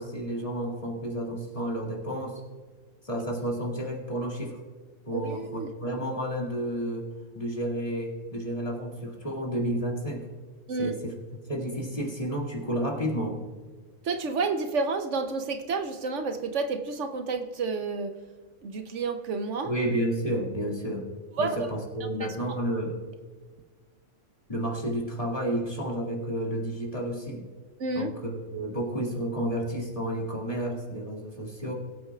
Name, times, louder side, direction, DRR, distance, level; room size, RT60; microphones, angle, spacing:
voice 1, 0.0-2.4 3.0-4.6 5.1-7.1 7.3-10.2 10.8-11.1 11.5-13.4 19.7-21.1 21.4-23.0 24.5-27.4 27.9-31.7, right 1 dB, 30° left, -1 dB, 2.2 m, -31 dB
voice 2, 5.1-6.0 10.7-10.9 14.0-18.2 18.6-19.7 21.4-21.7 22.2-22.3 27.8-28.1, right 4 dB, 70° right, 7 dB, 1.1 m, -30 dB
21.0 x 8.6 x 2.4 m, 1.4 s
omnidirectional pair, 1.3 m